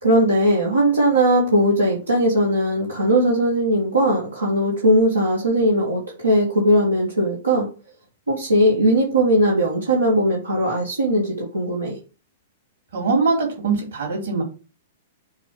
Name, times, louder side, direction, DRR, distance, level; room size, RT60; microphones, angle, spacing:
voice 1, 0.0-7.7 8.3-12.0, right 1 dB, 80° right, -3 dB, 2.2 m, -19 dB
voice 2, 12.9-14.4, right 4 dB, 60° right, 0 dB, 3.8 m, -22 dB
7.2 x 3.5 x 6.1 m, 0.35 s
figure-of-eight pair, 105°, 0 cm